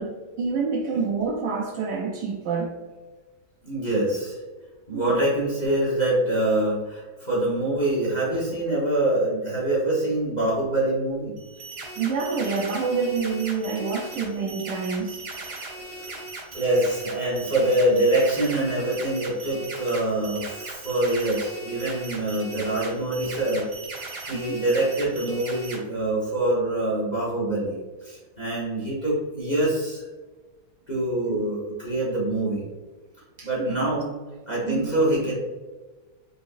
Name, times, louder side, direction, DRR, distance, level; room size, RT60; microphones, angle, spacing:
voice 1, 0.0-2.8 4.9-5.2 12.0-15.2 24.3-24.6 31.3-31.4 33.4-34.0 34.7-34.9, right 5 dB, 75° right, 1 dB, 1.1 m, -28 dB
voice 2, 3.6-4.4 4.9-11.3 15.8-16.1 16.5-23.7 24.3-30.0 30.9-32.6 33.4-34.1 34.5-35.3, right 1 dB, 25° left, -7 dB, 1.1 m, -25 dB
sound 1, 11.4-25.8, right 2 dB, 55° right, 1.6 m, -38 dB
5.0 x 3.7 x 2.6 m, 1.3 s
omnidirectional pair, 2.2 m